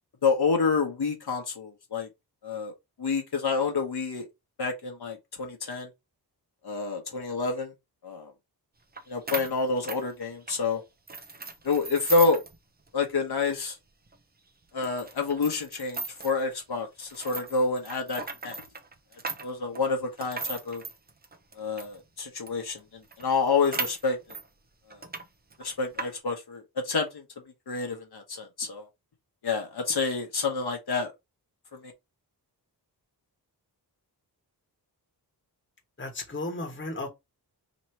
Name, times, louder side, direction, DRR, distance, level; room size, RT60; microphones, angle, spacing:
voice 1, 0.2-2.1 2.4-2.7 3.0-4.2 4.6-5.9 6.6-7.7 8.0-8.3 9.1-10.8 11.6-12.4 12.9-13.8 14.7-18.6 19.4-20.8 21.6-24.2 24.9-25.0 25.6-27.2 27.7-28.9 29.4-31.1 31.7-31.9, left 4 dB, 70° left, 1.1 m, -28 dB
sound 1, 9.0-9.1 9.3-10.6 11.1-12.6 12.9-13.0 13.4-13.5 14.1-14.2 14.8-16.4 17.0-22.0 22.5-22.6 22.8-22.9 23.1-24.5 24.9-25.2 25.5-26.1, right 3 dB, 25° right, 0.6 m, -37 dB
voice 2, 36.0-37.1, left 2 dB, 30° left, 1.3 m, -34 dB
3.1 x 2.9 x 4.3 m
wide cardioid pair, 115°, 40 cm